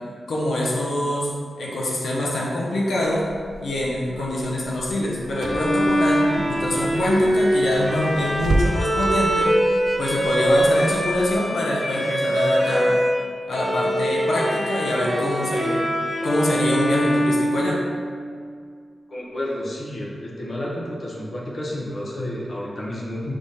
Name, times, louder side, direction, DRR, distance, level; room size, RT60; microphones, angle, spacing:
voice 1, 0.3-1.3 1.6-3.2 3.6-9.5 10.0-13.0 13.5-15.9 16.2-17.8, left 1 dB, 90° left, -5 dB, 0.8 m, -24 dB
Car / Engine, 3.0-11.3, right 2 dB, 75° right, 0.4 m, -32 dB
Bowed string instrument, 5.3-13.2 13.5-18.3, equal, 5° left, 0.9 m, -23 dB
voice 2, 19.1-23.3, left 1 dB, 55° left, -5 dB, 0.7 m, -30 dB
5.0 x 3.5 x 2.8 m, 2.1 s
wide cardioid pair, 130°, 0 cm